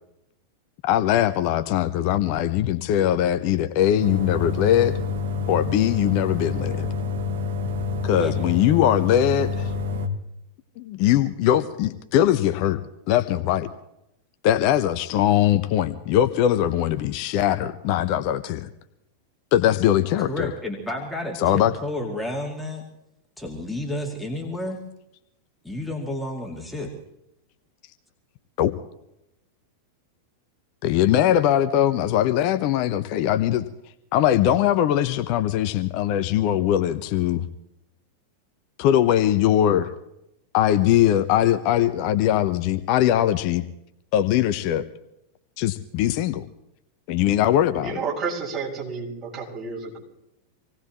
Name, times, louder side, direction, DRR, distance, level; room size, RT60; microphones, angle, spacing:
voice 1, 0.8-4.9 5.5-6.9 8.0-9.7 10.8-12.8 13.1-13.7 14.4-18.7 19.5-20.5 21.4-21.7 28.6-28.7 30.8-33.6 34.1-37.4 38.8-39.9 40.5-43.6 44.1-44.8 45.6-46.5 47.1-48.0, left 11 dB, 45° left, 10 dB, 0.8 m, -21 dB
sound 1, 4.0-10.1, left 4 dB, 60° right, 1.6 m, -27 dB
voice 2, 20.2-22.8 23.4-24.8 25.6-26.9, left 1 dB, 5° left, 0 dB, 2.4 m, -31 dB
voice 3, 47.8-50.0, right 5 dB, 35° right, -4 dB, 6.3 m, -30 dB
26.5 x 18.0 x 3.1 m, 0.85 s
figure-of-eight pair, 90°, 0 cm